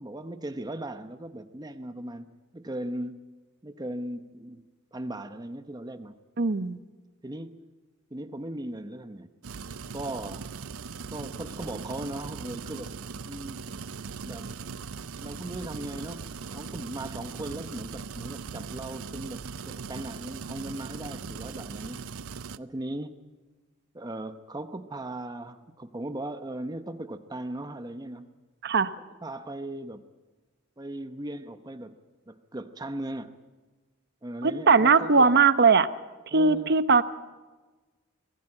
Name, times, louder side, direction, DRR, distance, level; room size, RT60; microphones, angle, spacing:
voice 1, 0.0-3.2 3.6-4.6 4.9-6.1 7.2-7.7 8.1-9.3 9.9-10.5 11.1-13.7 14.2-14.5 15.2-22.1 22.6-23.3 23.9-28.3 29.0-30.0 30.8-32.0 32.3-33.3 34.2-35.4 36.3-36.7, right 1 dB, 20° right, 9 dB, 0.9 m, -38 dB
voice 2, 6.4-6.8 28.6-28.9 34.4-35.9 36.3-37.0, right 4 dB, 50° right, 13 dB, 0.9 m, -20 dB
sound 1, 9.4-22.6, right 5 dB, 85° right, 0.7 m, -39 dB
25.0 x 17.0 x 8.8 m, 1.3 s
head